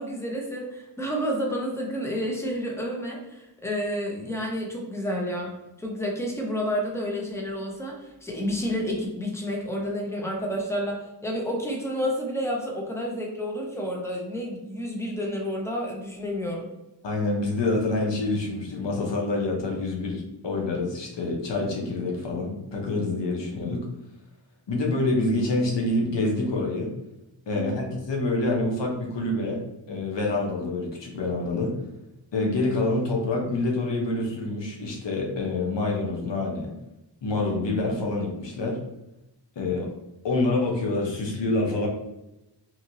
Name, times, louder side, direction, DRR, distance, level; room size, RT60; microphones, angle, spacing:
voice 1, 0.0-5.5 5.8-16.7 27.5-27.8, equal, 5° left, 0 dB, 0.8 m, -30 dB
voice 2, 17.0-23.8 24.7-26.9 27.5-29.6 29.9-31.8 32.3-36.7 37.2-38.8 39.6-39.9 40.2-41.9, left 2 dB, 80° left, -1 dB, 0.8 m, -26 dB
2.8 x 2.7 x 2.6 m, 0.92 s
cardioid pair, 55°, 42 cm